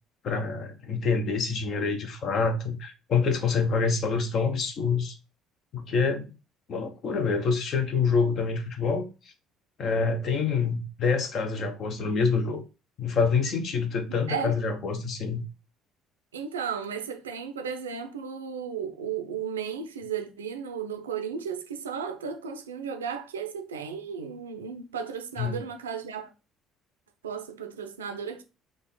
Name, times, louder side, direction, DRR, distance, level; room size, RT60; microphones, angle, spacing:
voice 1, 0.2-5.1 5.7-6.3 6.7-9.1 9.8-12.6 13.0-15.4 25.4-25.5, left 5 dB, 50° left, 0.8 m, -26 dB
voice 2, 16.3-26.3 27.2-28.4, right 7 dB, 80° right, 0.5 m, -34 dB
3.8 x 2.4 x 3.8 m
figure-of-eight pair, 55°, 0 cm